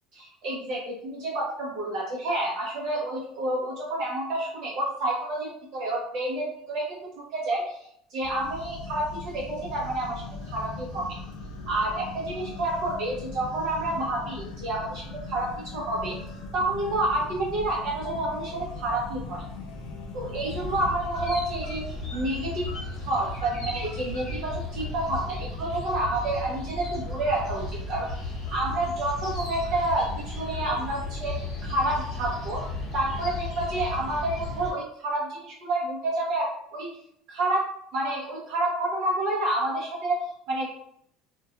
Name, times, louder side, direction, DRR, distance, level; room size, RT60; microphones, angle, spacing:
voice 1, 0.1-7.8 8.1-11.2 11.7-16.2 16.5-19.4 20.1-21.8 22.1-22.7 23.0-28.1 28.5-32.6 32.9-36.9 37.3-40.7, right 1 dB, 50° right, -3 dB, 0.6 m, -29 dB
sound 1, 8.2-20.9, left 3 dB, 80° left, 0.5 m, -39 dB
sound 2, 20.4-34.7, left 2 dB, 35° left, 1.2 m, -35 dB
2.3 x 2.2 x 2.7 m, 0.69 s
cardioid pair, 165°, 0 cm